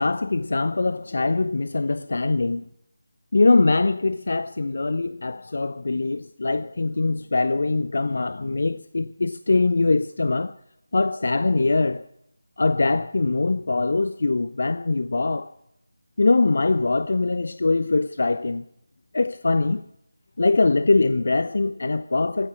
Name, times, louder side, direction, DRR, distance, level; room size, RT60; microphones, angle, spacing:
voice 1, 0.0-2.6 3.3-10.5 10.9-12.0 12.6-15.5 16.2-18.6 19.1-19.8 20.4-22.5, left 3 dB, 50° left, 0.6 m, -22 dB
15.5 x 9.7 x 7.3 m
figure-of-eight pair, 160°, 0 cm